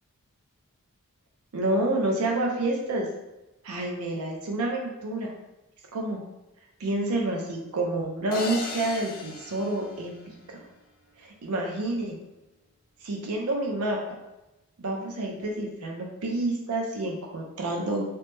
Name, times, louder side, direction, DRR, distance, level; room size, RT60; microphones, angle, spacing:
voice 1, 1.5-3.1 3.6-5.3 5.9-6.3 6.8-10.6 11.2-12.2 13.0-14.0 14.8-18.0, right 2 dB, 75° right, 0 dB, 0.5 m, -29 dB
sound 1, 8.3-10.7, left 3 dB, 40° left, 0.4 m, -37 dB
3.0 x 2.0 x 3.2 m, 0.99 s
head